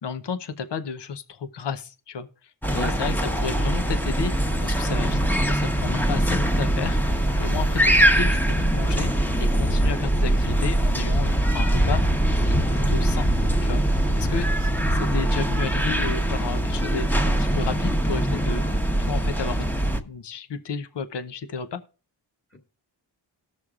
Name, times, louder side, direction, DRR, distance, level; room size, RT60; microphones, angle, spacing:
voice 1, 0.0-9.3 9.5-12.0 12.4-13.3 13.6-14.5 14.9-19.8 20.0-21.8, left 5 dB, 65° left, 0.8 m, -33 dB
sound 1, 2.6-20.0, right 1 dB, 5° left, 0.9 m, -22 dB
voice 2, 2.7-3.5 8.8-9.0 12.8-12.9, left 1 dB, 30° left, 1.9 m, -36 dB
18.5 x 6.3 x 2.4 m
cardioid pair, 45°, 45 cm